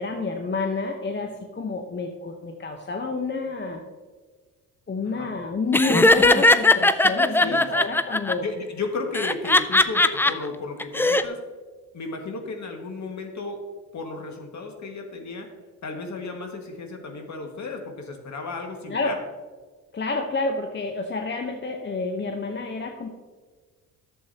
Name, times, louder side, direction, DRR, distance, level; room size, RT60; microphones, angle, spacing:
voice 1, 0.0-3.8 4.9-8.5 18.9-19.1 19.9-23.1, left 3 dB, 30° left, 3 dB, 0.9 m, -29 dB
Laughter, 5.7-8.3 9.1-10.3 10.8-11.2, left 2 dB, 5° left, 0.4 m, -18 dB
voice 2, 7.4-7.8 8.4-11.4 11.9-13.6 13.9-15.5 15.8-19.2, left 3 dB, 45° left, 3 dB, 1.9 m, -34 dB
11.5 x 7.6 x 2.9 m, 1.4 s
supercardioid pair, 60°, 39 cm